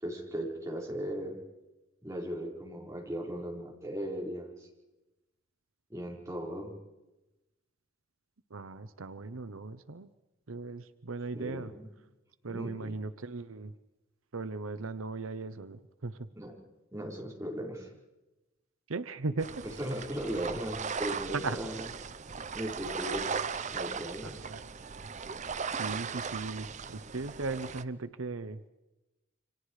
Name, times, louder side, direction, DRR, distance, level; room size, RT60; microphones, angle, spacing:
voice 1, 0.0-1.4 2.0-4.7 5.9-6.7 11.3-11.9 12.5-13.0 16.3-16.5 16.9-17.9 19.6-21.9 22.5-23.3 23.7-24.5, equal, 15° right, -2 dB, 5.1 m, -37 dB
voice 2, 8.5-10.1 10.5-11.7 12.4-13.7 14.3-16.2 18.9-19.5 21.3-21.6 24.2-24.6 25.8-28.6, right 3 dB, 80° right, 12 dB, 0.9 m, -37 dB
sound 1, 19.4-27.8, right 6 dB, 35° right, 0.7 m, -38 dB
29.0 x 25.5 x 4.9 m, 1.0 s
head